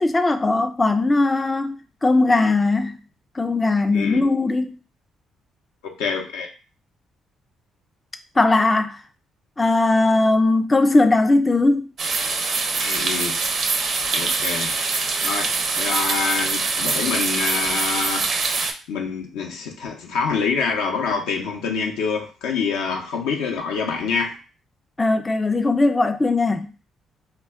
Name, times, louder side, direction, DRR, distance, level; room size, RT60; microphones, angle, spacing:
voice 1, 0.0-3.0 3.4-4.8 8.4-9.0 9.6-11.9 25.0-26.7, left 2 dB, 25° left, 0.3 m, -19 dB
voice 2, 5.8-6.5 12.8-13.4 14.1-14.7 15.2-18.3 18.9-24.3, left 5 dB, 85° left, 0.6 m, -26 dB
sound 1, 12.0-18.7, right 4 dB, 60° right, 0.5 m, -24 dB
2.2 x 2.2 x 3.4 m
supercardioid pair, 55°, 0 cm